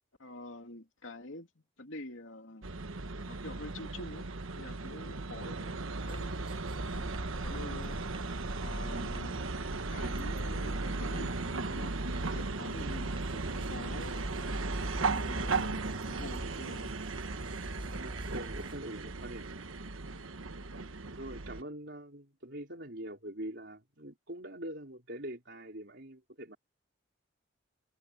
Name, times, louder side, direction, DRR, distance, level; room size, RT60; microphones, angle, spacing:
voice 1, 0.2-1.5 1.8-2.7 3.2-4.3 4.5-5.8 6.1-6.3 6.9-7.1 7.4-8.0 8.6-9.5 9.9-16.9, left 2 dB, 75° left, 2.7 m, -47 dB
sound 1, 2.6-21.6, right 3 dB, 90° right, 1.2 m, -36 dB
sound 2, 6.0-18.8, equal, 25° right, 3.8 m, -44 dB
voice 2, 17.8-19.7 21.1-26.6, right 1 dB, 60° right, 4.2 m, -44 dB
head